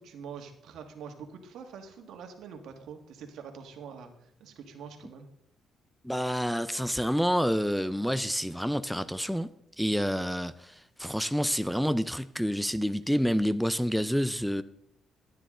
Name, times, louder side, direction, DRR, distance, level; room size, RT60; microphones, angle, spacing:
voice 1, 0.0-4.1 4.4-5.3, right 6 dB, 80° right, 4 dB, 1.6 m, -45 dB
voice 2, 6.0-9.5 9.8-14.6, equal, ahead, 14 dB, 0.5 m, -28 dB
12.0 x 9.2 x 3.7 m, 0.71 s
cardioid pair, 90°, 0 cm